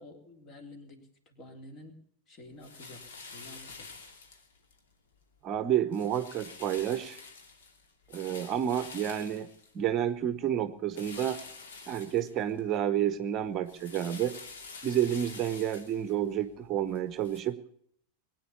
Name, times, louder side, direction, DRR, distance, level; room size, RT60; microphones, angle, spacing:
voice 1, 0.0-2.0 2.3-3.9, left 2 dB, 35° left, 6 dB, 3.4 m, -50 dB
sound 1, 2.6-4.8 5.2-5.6 5.9-10.2 10.9-12.8 13.1-17.4, left 4 dB, 60° left, 2.7 m, -48 dB
voice 2, 5.4-7.2 8.1-9.5 9.7-11.4 11.9-14.4 14.8-17.6, right 10 dB, 30° right, 13 dB, 0.9 m, -30 dB
21.5 x 9.3 x 6.9 m, 0.65 s
figure-of-eight pair, 90°, 0 cm